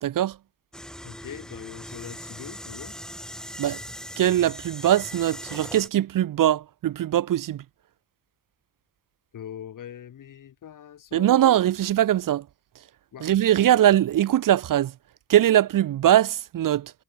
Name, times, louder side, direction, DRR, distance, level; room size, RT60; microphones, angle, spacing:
voice 1, 0.0-0.3 3.6-3.8 4.2-7.6 11.1-12.4 13.2-14.9 15.3-16.9, right 12 dB, 50° right, 0.8 m, -21 dB
sound 1, 0.7-5.9, equal, ahead, 5.2 m, -40 dB
voice 2, 1.0-2.9 9.3-11.6 13.1-13.3, left 9 dB, 50° left, 2.4 m, -41 dB
wide cardioid pair, 170°, 40 cm